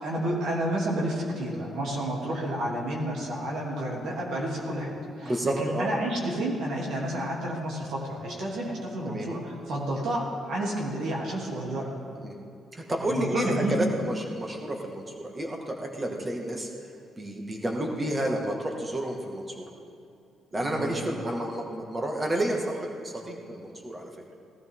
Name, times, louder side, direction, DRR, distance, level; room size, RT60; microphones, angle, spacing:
voice 1, 0.0-11.9 13.0-13.8 20.6-21.1, right 1 dB, 75° right, -4 dB, 3.2 m, -30 dB
voice 2, 5.2-5.9 9.1-9.3 12.2-12.4 12.7-16.7 17.2-19.7 20.5-24.1, right 1 dB, 25° right, 1 dB, 2.1 m, -30 dB
18.0 x 13.0 x 3.9 m, 2.6 s
cardioid pair, 90°, 0 cm